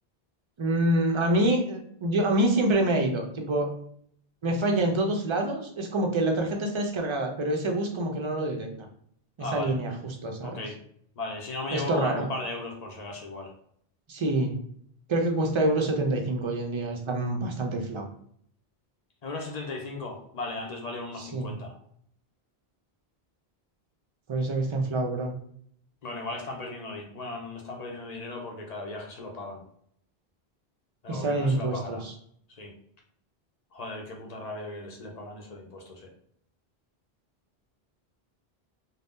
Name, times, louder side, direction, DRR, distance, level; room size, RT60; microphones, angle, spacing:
voice 1, 0.6-3.7 4.4-8.7 9.4-9.9 10.2-10.6 11.7-12.3 14.1-14.5 15.1-18.1 21.2-21.5 24.3-25.3 31.1-32.1, right 1 dB, 45° right, 2 dB, 0.4 m, -26 dB
voice 2, 9.4-9.8 10.4-10.7 11.2-13.5 19.2-21.7 26.0-29.6 31.0-32.0 32.6-32.7 33.7-36.1, left 2 dB, 50° left, 1 dB, 0.6 m, -36 dB
2.6 x 2.1 x 3.4 m, 0.65 s
omnidirectional pair, 1.1 m